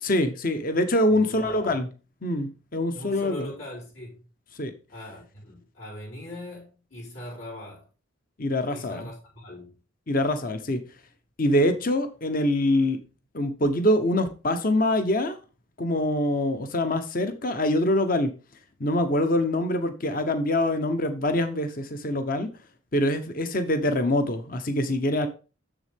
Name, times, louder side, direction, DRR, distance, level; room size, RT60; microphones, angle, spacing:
voice 1, 0.0-1.9 2.2-3.5 4.6-4.7 8.4-9.1 10.1-10.8 11.4-13.0 13.3-15.4 15.8-18.3 18.8-22.5 22.9-25.3, left 1 dB, 45° left, 0.9 m, -24 dB
voice 2, 1.1-1.6 2.9-4.3 4.9-7.9 8.7-9.7, left 1 dB, 75° left, 4.3 m, -41 dB
7.4 x 6.9 x 3.5 m
head